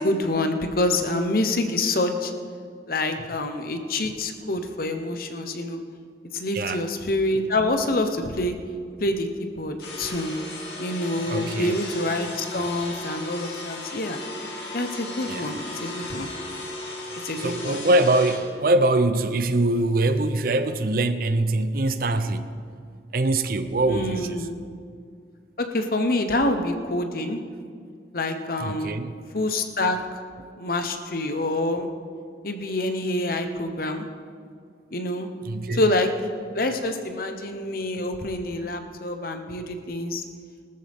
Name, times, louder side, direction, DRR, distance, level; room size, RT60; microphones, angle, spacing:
voice 1, 0.0-2.3 2.9-5.8 6.3-8.5 9.0-10.3 10.8-14.2 14.7-16.3 17.2-17.8 23.9-24.6 25.6-27.4 28.1-29.0 29.3-30.0 30.6-31.9 32.4-34.1 34.9-35.3 35.7-36.1 36.5-40.2, left 2 dB, 55° left, 6 dB, 1.0 m, -26 dB
voice 2, 6.5-6.9 11.3-11.8 15.3-15.5 17.4-22.5 23.1-24.5 28.6-29.1 35.4-35.8, right 2 dB, 55° right, 10 dB, 0.7 m, -23 dB
sound 1, 9.8-18.4, left 2 dB, 75° left, 2.6 m, -36 dB
19.0 x 13.5 x 3.6 m, 2.2 s
head